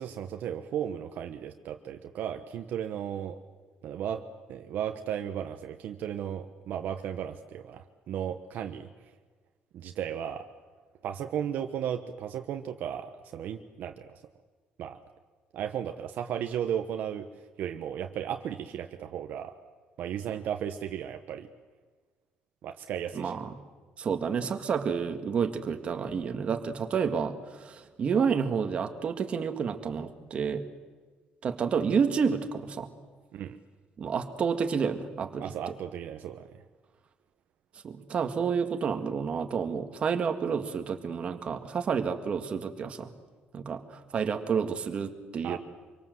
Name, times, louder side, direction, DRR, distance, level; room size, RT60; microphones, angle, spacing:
voice 1, 0.0-3.4 3.8-4.2 4.5-8.9 9.7-10.4 11.0-14.2 14.8-15.0 15.5-17.3 17.6-19.5 20.0-21.5 22.6-23.4 33.3-33.6 35.4-36.6 45.4-45.6, right 9 dB, 60° right, 6 dB, 1.2 m, -35 dB
voice 2, 23.1-23.5 24.0-30.7 31.4-32.9 34.0-35.7 37.8-43.1 43.5-45.6, right 6 dB, 35° right, 6 dB, 1.8 m, -30 dB
26.0 x 24.5 x 7.8 m, 1.4 s
cardioid pair, 175°, 3 cm